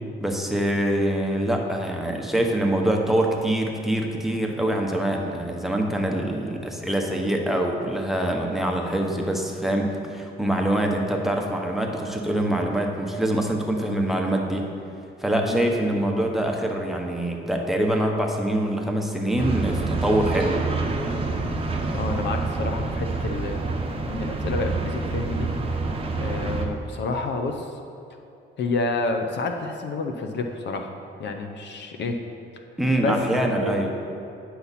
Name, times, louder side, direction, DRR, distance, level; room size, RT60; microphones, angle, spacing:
voice 1, 0.2-14.7 15.2-20.6 32.8-33.9, right 1 dB, ahead, 1 dB, 1.0 m, -24 dB
sound 1, 19.4-26.7, right 3 dB, 30° right, 0.9 m, -27 dB
voice 2, 21.9-23.7 24.1-25.5 26.2-27.7 28.6-30.9 31.2-32.2 33.0-33.2 33.6-33.8, left 3 dB, 60° left, 5 dB, 0.7 m, -29 dB
9.5 x 5.8 x 4.2 m, 2.7 s
cardioid pair, 90°, 20 cm